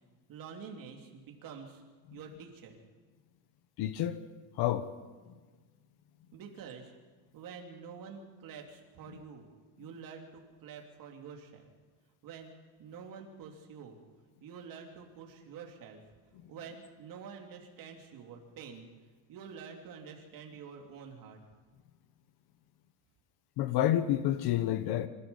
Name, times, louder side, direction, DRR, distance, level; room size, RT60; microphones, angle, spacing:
voice 1, 0.3-1.8 2.1-2.7 6.3-6.9 7.3-9.4 9.8-11.6 12.2-12.5 12.8-14.0 14.4-16.0 16.5-18.9 19.3-21.4, right 6 dB, 50° right, 3.4 m, -47 dB
voice 2, 3.8-4.2 4.6-4.9 23.6-25.1, left 12 dB, 65° left, 1.2 m, -29 dB
26.0 x 14.5 x 7.3 m
cardioid pair, 175°, 42 cm